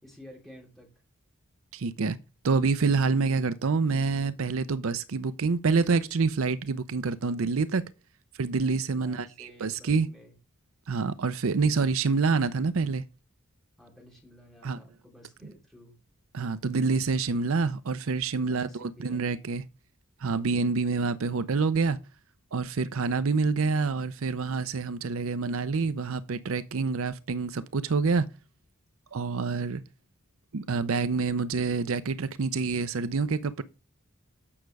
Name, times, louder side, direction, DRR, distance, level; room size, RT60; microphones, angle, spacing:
voice 1, 0.0-0.9 8.9-10.3 13.8-15.9 18.4-19.5, left 1 dB, ahead, 3.7 m, -52 dB
voice 2, 1.7-2.2 2.4-7.8 8.4-10.1 10.9-13.0 14.6-14.8 16.3-19.6 20.2-22.0 22.5-28.3 29.1-29.8 30.5-33.6, right 4 dB, 70° right, 0.5 m, -27 dB
8.7 x 6.4 x 4.7 m
head